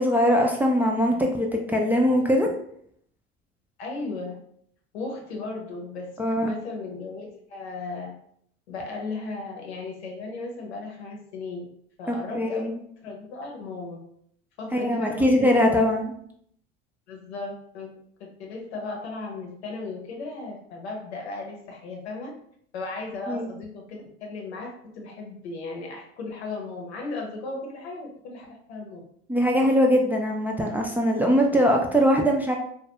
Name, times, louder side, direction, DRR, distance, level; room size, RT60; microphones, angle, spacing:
voice 1, 0.0-2.5 6.2-6.5 12.1-12.7 14.7-16.1 23.3-23.5 29.3-32.6, equal, 5° right, 0 dB, 0.3 m, -22 dB
voice 2, 3.8-4.4 4.9-8.1 8.7-11.6 12.0-14.0 14.6-16.0 17.1-17.9 18.2-22.3 22.7-29.0, left 3 dB, 85° left, 0 dB, 0.8 m, -36 dB
2.2 x 2.2 x 2.8 m, 0.66 s
hypercardioid pair, 75°, 32 cm